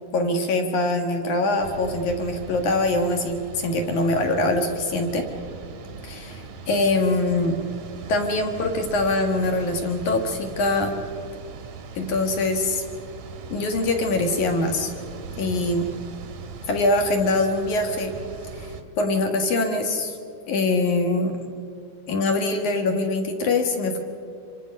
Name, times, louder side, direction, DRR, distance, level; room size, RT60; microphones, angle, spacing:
voice 1, 0.1-5.2 6.0-7.6 8.1-10.9 12.0-12.8 13.5-14.9 15.4-15.9 16.7-18.1 18.6-18.7 19.0-20.2 20.5-21.3 22.1-24.0, left 2 dB, 65° left, 5 dB, 2.0 m, -23 dB
sound 1, 1.6-18.8, right 5 dB, 65° right, 1.8 m, -39 dB
26.5 x 25.0 x 5.3 m, 2.6 s
omnidirectional pair, 5.6 m